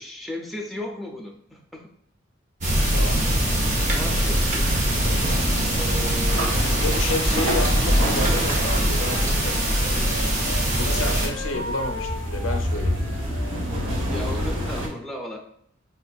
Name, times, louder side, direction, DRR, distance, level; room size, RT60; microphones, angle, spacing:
voice 1, 0.0-1.9 3.5-4.9 5.7-6.6 11.0-11.2 14.1-15.4, left 1 dB, ahead, 2 dB, 0.4 m, -36 dB
sound 1, 2.6-11.3, right 1 dB, 40° right, 0.8 m, -22 dB
sound 2, 4.6-14.9, equal, 75° right, 0.8 m, -29 dB
voice 2, 6.8-10.5 10.8-13.3, left 2 dB, 90° left, 5 dB, 0.6 m, -31 dB
Wind instrument woodwind instrument, 8.0-10.6 10.9-13.6, equal, 60° right, 1.3 m, -37 dB
5.0 x 2.5 x 2.3 m, 0.67 s
head